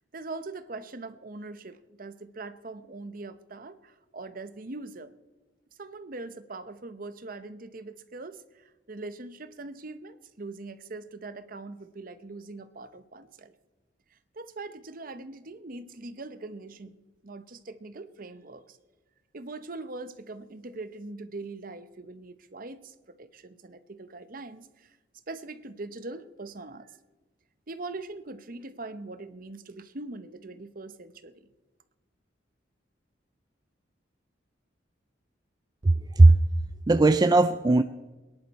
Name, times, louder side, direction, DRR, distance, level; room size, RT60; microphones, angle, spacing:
voice 1, 0.1-5.1 5.8-13.5 14.1-17.0 17.2-18.8 19.3-25.0 25.3-27.0 27.7-31.5, right 3 dB, 50° right, 0.9 m, -42 dB
voice 2, 35.8-36.4 36.9-37.8, right 2 dB, 20° right, 0.4 m, -18 dB
24.5 x 10.5 x 4.2 m
head